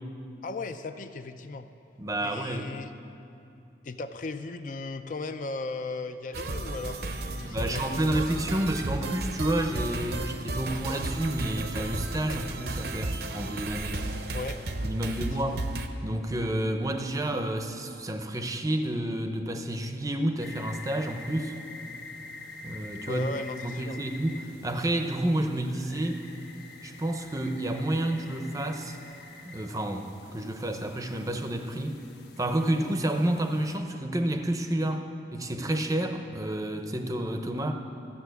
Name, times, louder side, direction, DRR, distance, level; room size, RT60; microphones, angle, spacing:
voice 1, 0.4-1.7 2.2-2.9 3.8-8.2 14.3-14.6 15.1-15.6 23.1-24.0, left 3 dB, 45° left, 9 dB, 0.4 m, -37 dB
voice 2, 2.0-2.7 7.4-14.0 14.8-15.6 16.0-21.5 22.6-23.3 23.6-26.2 26.8-29.0 29.4-32.0 32.4-35.0 35.3-37.7, right 1 dB, 20° right, 6 dB, 0.6 m, -30 dB
sound 1, 6.3-15.9, right 2 dB, 60° right, 0.7 m, -33 dB
sound 2, 20.4-33.8, left 3 dB, 75° left, 1.1 m, -47 dB
12.5 x 7.1 x 8.1 m, 2.7 s
head